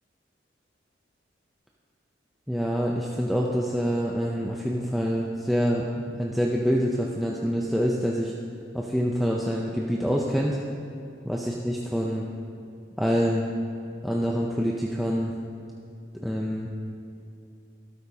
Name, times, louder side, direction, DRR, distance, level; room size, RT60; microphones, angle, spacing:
voice 1, 2.5-8.3 8.7-10.6 11.3-12.2 13.0-13.5 14.0-15.3 16.2-16.7, equal, ahead, -3 dB, 0.5 m, -26 dB
13.0 x 12.0 x 2.8 m, 2.6 s
head